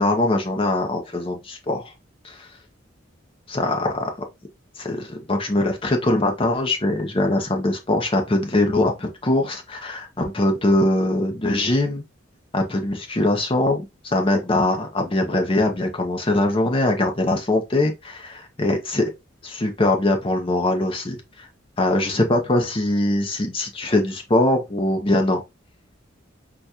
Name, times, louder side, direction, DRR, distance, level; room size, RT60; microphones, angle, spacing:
voice 1, 0.0-1.9 2.2-2.5 3.5-4.1 4.8-12.0 12.5-19.1 19.4-21.2 21.8-25.4, left 1 dB, 30° left, 0.7 m, -22 dB
3.9 x 2.3 x 2.7 m
head